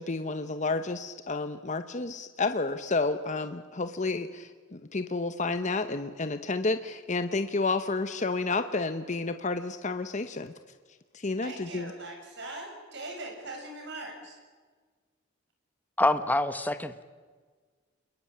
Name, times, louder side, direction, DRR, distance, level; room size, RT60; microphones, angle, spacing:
voice 1, 0.0-10.5 11.1-11.9, left 3 dB, 40° left, 9 dB, 0.9 m, -30 dB
voice 2, 11.4-14.4, right 2 dB, 60° right, 2 dB, 7.7 m, -41 dB
voice 3, 16.0-17.0, left 1 dB, 10° left, 10 dB, 1.0 m, -26 dB
27.5 x 22.0 x 8.7 m, 1.5 s
head